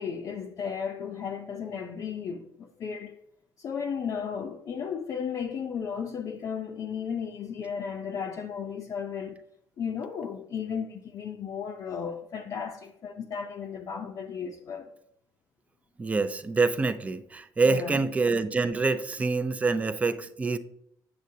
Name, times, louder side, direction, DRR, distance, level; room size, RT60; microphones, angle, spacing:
voice 1, 0.0-3.2 3.6-9.4 9.8-14.9 17.7-18.0, left 7 dB, 45° left, 0.6 m, -34 dB
voice 2, 16.0-20.6, right 3 dB, 20° right, 0.5 m, -26 dB
7.7 x 7.3 x 2.7 m
cardioid pair, 135°, 8 cm